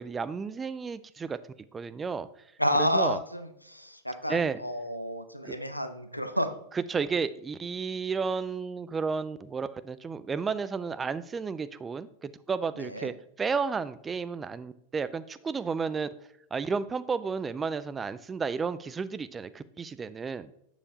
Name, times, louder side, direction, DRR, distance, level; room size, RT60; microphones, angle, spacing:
voice 1, 0.0-1.4 1.7-2.3 2.8-3.2 4.3-4.6 5.4-5.6 6.7-16.1 16.5-20.5, right 5 dB, 15° right, 14 dB, 0.3 m, -32 dB
voice 2, 2.6-6.5 12.8-13.1, equal, 90° left, 9 dB, 0.5 m, -30 dB
7.3 x 6.5 x 2.7 m, 0.76 s
figure-of-eight pair, 90°, 0 cm